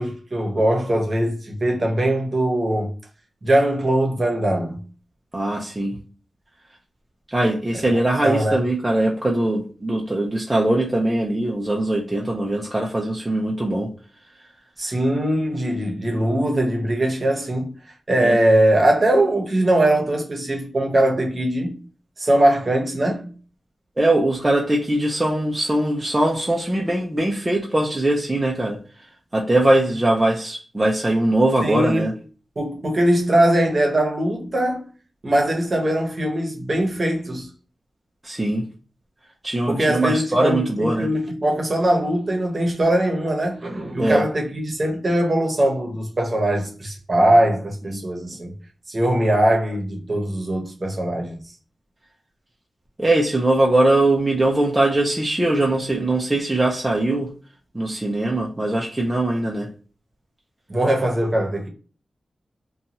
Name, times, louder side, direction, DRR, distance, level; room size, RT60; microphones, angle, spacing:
voice 1, 0.0-2.9 3.4-4.8 8.2-8.6 14.8-17.7 18.1-21.8 22.2-23.3 31.6-32.1 32.6-34.9 35.2-37.5 39.7-48.5 48.9-51.4 60.7-61.7, right 1 dB, 35° right, 0.9 m, -21 dB
voice 2, 5.3-6.0 7.3-13.9 14.4-14.5 18.2-18.4 24.0-28.8 29.3-32.1 38.2-38.7 39.4-41.1 44.0-44.2 47.9-48.0 53.0-57.3 57.7-59.7, right 1 dB, 15° right, 0.4 m, -21 dB
2.7 x 2.3 x 2.8 m
wide cardioid pair, 135°, 0 cm